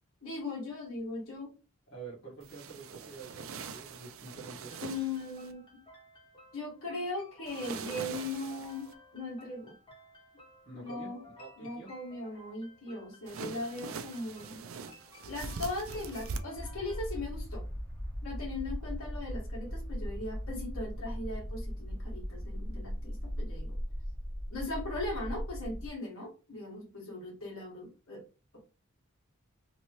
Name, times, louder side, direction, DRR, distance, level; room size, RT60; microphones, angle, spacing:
voice 1, 0.2-1.5 4.8-5.8 6.5-9.7 10.8-11.2 11.6-14.6 15.3-17.6 18.2-23.8 24.5-28.2, left 2 dB, 70° left, -2 dB, 1.7 m, -39 dB
voice 2, 1.9-4.8 10.6-11.1 11.4-11.9, right 4 dB, 50° left, -7 dB, 1.4 m, -47 dB
sound 1, 2.4-5.5 7.5-8.9 13.3-16.4, right 4 dB, 65° right, 0.4 m, -42 dB
sound 2, 4.7-17.0, left 2 dB, 25° left, 1.1 m, -56 dB
sound 3, 16.5-25.9, equal, 5° left, 1.0 m, -38 dB
3.2 x 2.8 x 3.0 m, 0.31 s
head